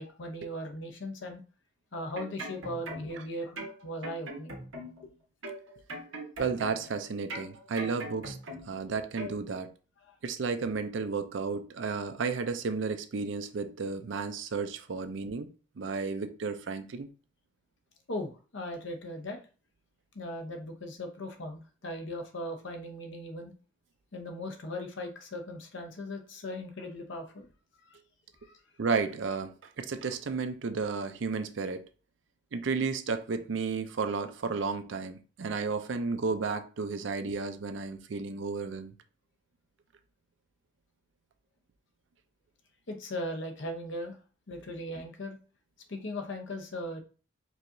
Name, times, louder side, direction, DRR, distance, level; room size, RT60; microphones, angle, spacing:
voice 1, 0.0-1.4 1.9-4.5 5.0-5.1 10.1-10.2 18.1-19.4 20.1-23.5 24.1-27.5 28.4-28.6 42.9-44.2 44.5-45.4 45.9-47.0, left 1 dB, 70° left, 0.8 m, -38 dB
sound 1, 1.9-3.2 3.6-5.1 5.4-7.0 7.3-8.8 9.2-9.4, right 1 dB, 90° right, 1.1 m, -41 dB
voice 2, 6.4-8.4 8.6-9.7 10.2-15.5 15.8-17.1 28.8-31.8 32.5-38.9, right 4 dB, 70° right, 0.5 m, -33 dB
4.6 x 2.9 x 2.6 m
head